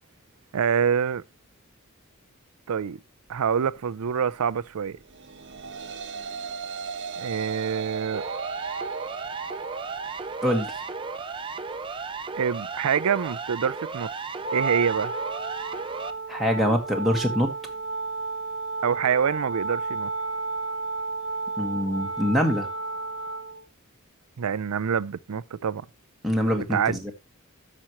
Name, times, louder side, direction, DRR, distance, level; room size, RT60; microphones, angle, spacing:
voice 1, 0.5-1.2 2.7-3.0 3.3-5.0 7.2-8.2 12.4-14.1 14.5-15.1 18.8-20.1 24.4-25.9 26.5-27.1, right 7 dB, 80° right, 0.5 m, -26 dB
sound 1, 5.1-14.3, right 5 dB, 50° right, 0.9 m, -37 dB
Siren, 8.1-16.1, right 4 dB, 20° right, 0.6 m, -35 dB
voice 2, 10.4-10.8 16.3-17.5 21.6-22.7 26.2-27.1, equal, ahead, 1.3 m, -24 dB
Wind instrument woodwind instrument, 14.4-23.6, right 3 dB, 55° left, 5.5 m, -32 dB
13.0 x 6.1 x 2.9 m
head